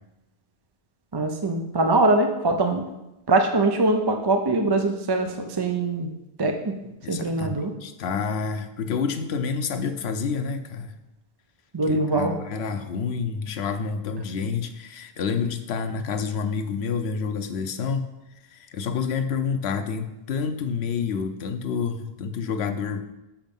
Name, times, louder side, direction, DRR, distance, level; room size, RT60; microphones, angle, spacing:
voice 1, 1.1-2.8 3.3-6.1 6.4-6.7 7.1-7.7 11.7-12.3, right 2 dB, 30° right, 4 dB, 0.5 m, -22 dB
voice 2, 7.0-10.9 11.8-18.1 18.5-23.0, left 5 dB, 90° left, 8 dB, 0.9 m, -28 dB
7.3 x 5.2 x 5.3 m, 0.95 s
omnidirectional pair, 1.0 m